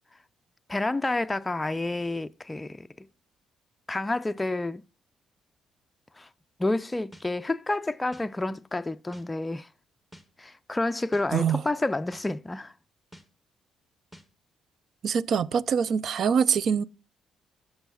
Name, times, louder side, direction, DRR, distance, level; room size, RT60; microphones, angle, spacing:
voice 1, 0.7-3.1 3.9-4.8 6.1-6.3 6.6-9.7 10.4-12.7, left 2 dB, 15° left, 0.3 m, -29 dB
sound 1, 7.1-7.3 8.1-8.3 9.1-9.3 10.1-10.3 11.1-11.3 12.1-12.3 13.1-13.3 14.1-14.3, equal, 5° right, 1.1 m, -48 dB
voice 2, 15.0-16.8, right 7 dB, 60° right, 0.4 m, -24 dB
14.5 x 6.2 x 2.3 m
cardioid pair, 90°, 0 cm